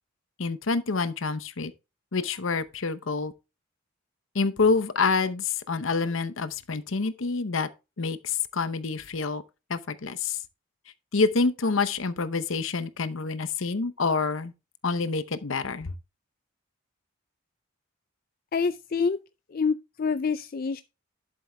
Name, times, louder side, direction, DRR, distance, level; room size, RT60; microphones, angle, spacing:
voice 1, 0.4-1.7 2.1-3.3 4.3-7.7 8.0-9.4 9.7-10.4 11.1-14.5 14.8-15.9, left 4 dB, 65° left, 0.8 m, -27 dB
voice 2, 18.5-19.2 19.5-20.8, left 5 dB, 45° left, 0.4 m, -27 dB
11.5 x 7.5 x 2.3 m
head